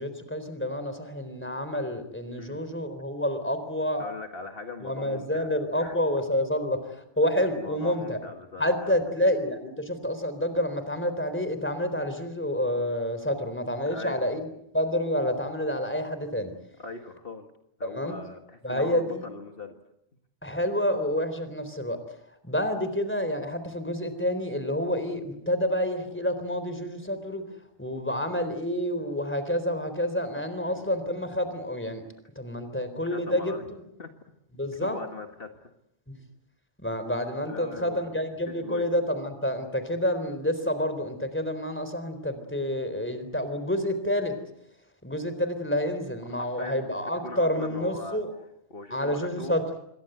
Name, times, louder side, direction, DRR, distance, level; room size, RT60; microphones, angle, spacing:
voice 1, 0.0-4.1 4.8-8.2 8.6-14.4 14.7-16.5 17.8-18.2 18.6-19.3 20.4-22.2 22.4-27.4 27.8-32.0 32.4-33.8 34.6-35.0 36.1-36.2 36.8-44.3 45.0-48.3 48.9-49.6, left 1 dB, 10° left, 10 dB, 3.8 m, -28 dB
voice 2, 4.0-5.5 5.8-6.0 7.4-9.0 13.9-14.2 16.8-17.5 17.8-19.7 30.7-30.9 33.1-33.7 34.0-34.1 34.7-35.7 37.5-38.1 38.5-38.9 46.2-46.9 47.2-48.2 48.7-49.6, left 3 dB, 55° left, 5 dB, 2.1 m, -40 dB
27.5 x 23.0 x 8.1 m, 0.78 s
omnidirectional pair, 1.1 m